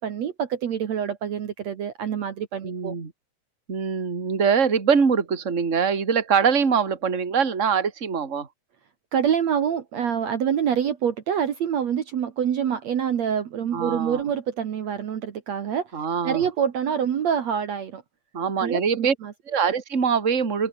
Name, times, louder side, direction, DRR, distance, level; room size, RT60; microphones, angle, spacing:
voice 1, 0.0-2.9 9.1-15.9 16.2-18.0 18.6-19.3, right 8 dB, 60° right, 2.6 m, -26 dB
voice 2, 2.6-3.1 3.7-8.5 13.7-14.2 15.9-16.5 18.3-19.1 19.5-20.7, right 6 dB, 25° right, 2.6 m, -23 dB
omnidirectional pair, 3.8 m